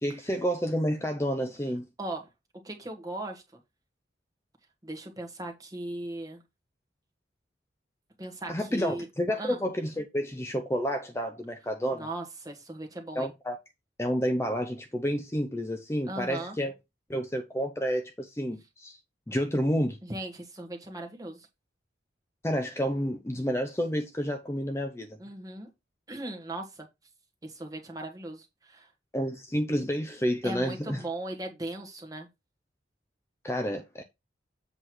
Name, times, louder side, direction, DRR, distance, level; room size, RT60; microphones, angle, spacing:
voice 1, 0.0-1.9 8.5-12.1 13.2-13.6 14.0-16.7 17.1-19.0 19.3-20.0 22.4-25.1 29.1-31.0 33.4-34.0, equal, 15° left, 0.6 m, -30 dB
voice 2, 2.0-2.3 2.6-3.4 4.8-6.4 8.2-9.1 9.4-9.6 11.9-13.3 16.1-16.6 20.0-21.5 25.2-25.7 26.1-26.9 27.4-28.9 30.4-32.3, right 1 dB, 20° right, 1.4 m, -38 dB
7.8 x 3.2 x 6.1 m
head